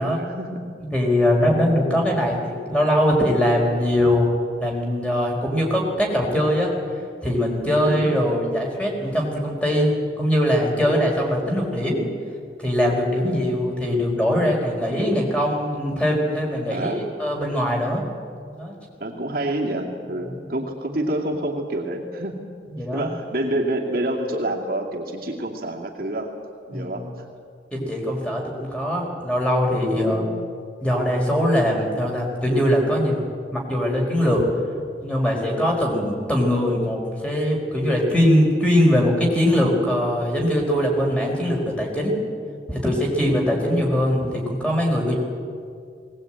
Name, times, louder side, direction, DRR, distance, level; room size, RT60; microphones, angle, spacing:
voice 1, 0.0-0.8 7.8-8.2 13.3-13.6 16.7-17.1 19.0-22.5 22.9-26.3 26.7-27.1 30.0-30.4 43.2-43.5, right 1 dB, 55° right, -1 dB, 2.5 m, -28 dB
voice 2, 0.8-4.3 4.6-6.7 7.2-12.1 12.6-18.0 18.5-18.7 20.2-20.6 22.7-23.1 26.7-27.0 27.7-30.2 30.8-33.2 33.5-34.4 35.0-42.2 42.7-45.2, equal, 5° left, -1 dB, 4.5 m, -21 dB
20.0 x 19.0 x 8.9 m, 2.3 s
head